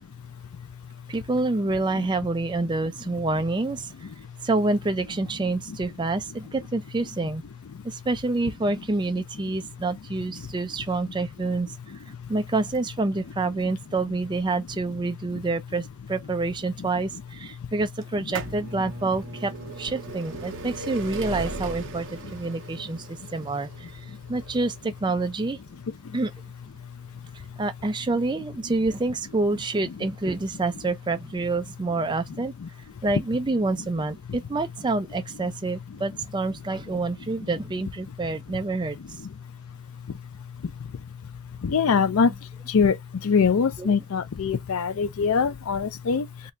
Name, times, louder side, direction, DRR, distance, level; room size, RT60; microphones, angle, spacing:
voice 1, 1.1-3.9 4.4-7.4 7.8-11.7 12.3-19.5 19.8-23.7 24.3-25.6 26.1-26.3 27.6-32.5 33.0-39.0 43.8-43.9, right 3 dB, 20° right, 0.4 m, -27 dB
sound 1, 18.0-29.7 30.5-30.6 31.5-31.6 31.8-31.9, right 3 dB, 60° right, 0.7 m, -38 dB
voice 2, 40.4-41.0 41.6-46.5, left 5 dB, 65° left, 0.4 m, -24 dB
3.9 x 2.3 x 3.0 m
head